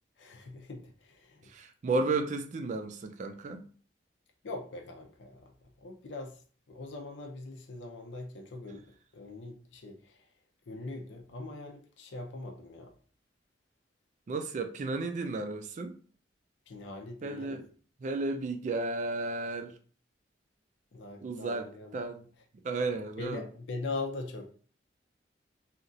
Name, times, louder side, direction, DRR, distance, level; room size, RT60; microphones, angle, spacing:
voice 1, 0.2-1.5 4.4-5.5 5.8-6.4 6.7-10.3 10.7-12.9 16.7-17.6 20.9-21.9 23.2-24.5, left 3 dB, 85° left, 0.5 m, -41 dB
voice 2, 1.5-3.7 14.3-15.9 17.2-17.6 18.0-19.7 21.2-22.2 22.6-23.4, right 3 dB, 40° right, 0.3 m, -33 dB
2.9 x 2.4 x 2.5 m
head